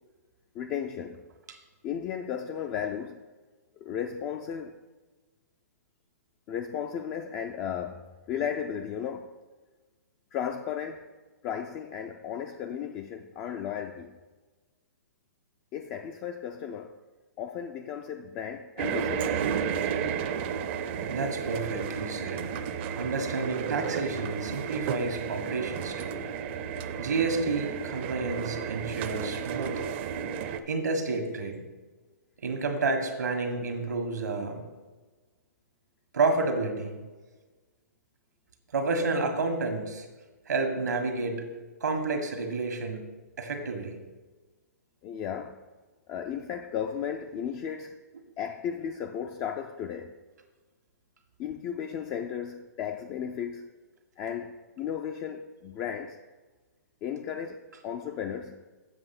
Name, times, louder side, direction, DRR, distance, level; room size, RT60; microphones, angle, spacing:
voice 1, 0.6-1.2 1.8-3.2 3.8-4.7 6.5-9.4 10.3-11.1 11.4-14.2 15.7-17.0 17.4-19.4 45.0-45.6 46.1-48.0 48.4-50.1 51.4-53.7 54.2-56.2 57.0-58.6, left 8 dB, 25° left, 0.4 m, -35 dB
sound 1, 18.8-30.6, right 7 dB, 40° right, 0.6 m, -32 dB
voice 2, 21.0-22.5 23.0-26.2 27.0-29.8 30.7-31.6 32.4-34.6 36.1-37.0 38.7-40.0 40.5-41.4 41.8-43.1 43.4-43.9, right 3 dB, 85° right, 1.6 m, -30 dB
7.8 x 5.3 x 6.0 m
hypercardioid pair, 140°, 9 cm